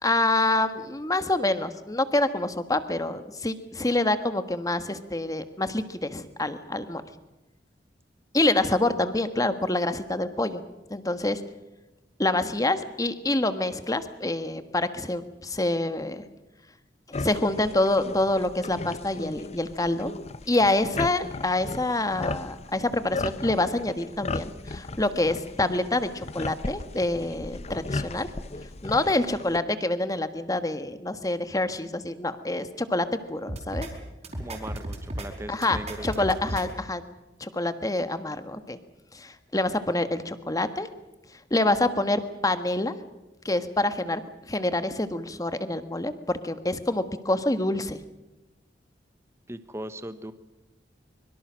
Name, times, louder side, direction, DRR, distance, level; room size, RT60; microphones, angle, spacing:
voice 1, 0.0-7.0 8.3-10.6 10.9-11.4 12.2-16.2 17.2-20.1 20.5-28.3 28.8-33.9 35.5-37.0 37.4-38.8 39.1-40.9 41.5-42.9 43.4-44.2 44.5-48.0, left 2 dB, 20° left, 10 dB, 1.4 m, -26 dB
sound 1, 17.1-29.6, left 3 dB, 35° left, 0.8 m, -36 dB
sound 2, 33.5-33.9 34.2-35.3 35.6-36.6, right 1 dB, 40° right, 4.8 m, -34 dB
voice 2, 34.3-36.2 49.5-50.3, right 1 dB, 15° right, 11 dB, 1.1 m, -38 dB
24.5 x 23.0 x 6.3 m, 0.99 s
head